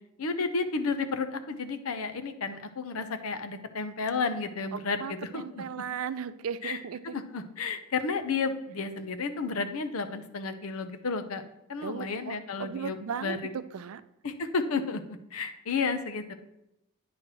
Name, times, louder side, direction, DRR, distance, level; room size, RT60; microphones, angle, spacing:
voice 1, 0.2-5.6 6.6-11.4 11.7-13.6 14.2-16.3, left 4 dB, 75° left, 9 dB, 0.7 m, -32 dB
voice 2, 4.7-7.2 11.8-14.0, right 7 dB, 75° right, 14 dB, 0.4 m, -37 dB
9.4 x 3.3 x 6.0 m, 0.87 s
head